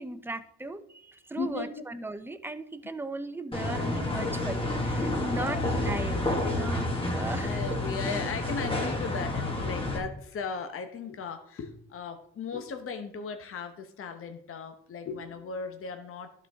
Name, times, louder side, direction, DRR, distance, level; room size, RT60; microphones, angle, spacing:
voice 1, 0.0-7.8, right 2 dB, 5° right, 10 dB, 0.5 m, -37 dB
voice 2, 1.4-1.7 5.2-5.7 7.4-16.3, left 5 dB, 45° left, 6 dB, 0.9 m, -37 dB
sound 1, 3.5-10.0, left 2 dB, 20° left, 1.6 m, -29 dB
11.5 x 4.5 x 3.5 m, 0.70 s
cardioid pair, 90°, 30 cm